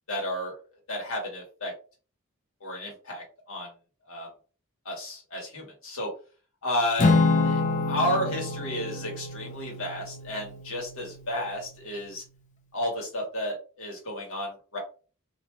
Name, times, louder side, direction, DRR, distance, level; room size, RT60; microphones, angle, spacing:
voice 1, 0.1-0.5 0.9-1.7 2.6-3.7 4.1-4.3 4.8-6.1 6.6-7.2 7.4-12.2 12.7-14.8, left 1 dB, 65° left, -2 dB, 1.4 m, -32 dB
Acoustic guitar / Strum, 7.0-11.4, left 3 dB, 35° left, 0.4 m, -27 dB
3.0 x 2.7 x 2.2 m, 0.37 s
head